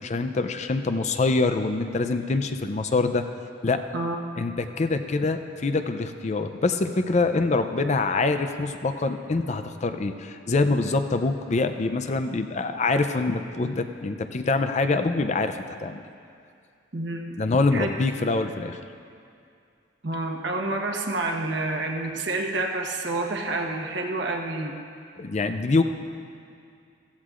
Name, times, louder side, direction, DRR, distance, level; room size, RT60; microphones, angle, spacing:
voice 1, 0.0-3.2 3.6-3.8 4.4-16.0 17.4-18.8 25.2-25.8, left 3 dB, 35° left, 8 dB, 0.4 m, -25 dB
voice 2, 16.9-17.3 17.7-17.9 20.0-24.7, right 2 dB, 60° right, 2 dB, 1.2 m, -28 dB
15.5 x 14.5 x 2.5 m, 2.4 s
head